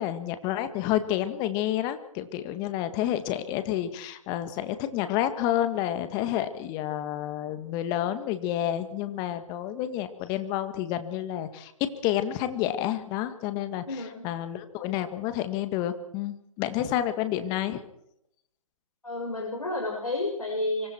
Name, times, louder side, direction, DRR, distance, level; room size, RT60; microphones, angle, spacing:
voice 1, 0.0-17.8, left 12 dB, 20° left, 11 dB, 1.9 m, -29 dB
voice 2, 13.9-14.2 19.0-20.9, left 2 dB, 85° left, -1 dB, 6.5 m, -31 dB
25.5 x 24.0 x 4.6 m, 0.76 s
figure-of-eight pair, 145°, 18 cm